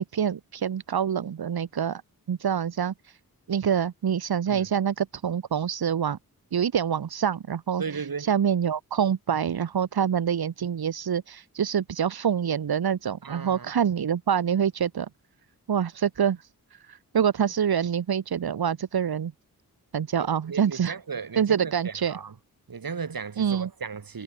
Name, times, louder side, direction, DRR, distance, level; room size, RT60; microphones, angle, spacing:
voice 1, 0.0-2.0 2.3-3.2 3.5-6.2 6.5-15.1 15.7-19.3 19.9-20.9 21.4-22.2 23.4-23.7, right 8 dB, 90° right, 1.2 m, -26 dB
voice 2, 7.8-8.3 13.2-13.7 20.2-22.3 22.7-24.2, right 5 dB, 70° right, 3.6 m, -36 dB
wide cardioid pair, 110°, 36 cm